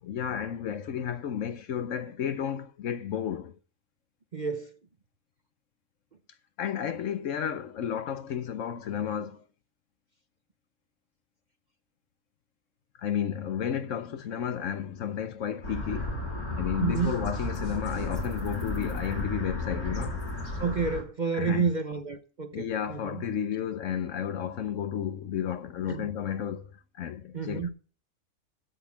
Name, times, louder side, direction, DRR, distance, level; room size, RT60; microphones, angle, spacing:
voice 1, 0.0-3.6 6.6-9.5 13.0-16.1 16.6-20.3 21.3-21.6 22.5-27.7, left 8 dB, 65° left, 1.0 m, -32 dB
voice 2, 4.3-4.7 16.8-17.2 17.8-18.0 20.6-23.2 25.9-26.1 27.3-27.7, right 5 dB, 40° right, 0.7 m, -30 dB
sound 1, 15.6-21.0, left 1 dB, 85° left, 4.1 m, -33 dB
8.0 x 7.9 x 7.2 m
omnidirectional pair, 1.6 m